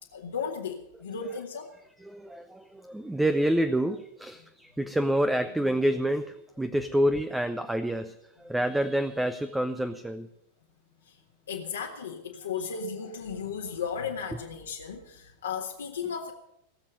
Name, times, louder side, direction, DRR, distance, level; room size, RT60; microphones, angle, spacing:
voice 1, 0.1-1.7 11.0-11.2 11.5-16.3, left 6 dB, 70° left, -1 dB, 1.7 m, -35 dB
voice 2, 2.0-10.3, right 1 dB, 5° right, 10 dB, 0.8 m, -28 dB
19.0 x 7.4 x 9.1 m, 0.80 s
figure-of-eight pair, 90°, 0 cm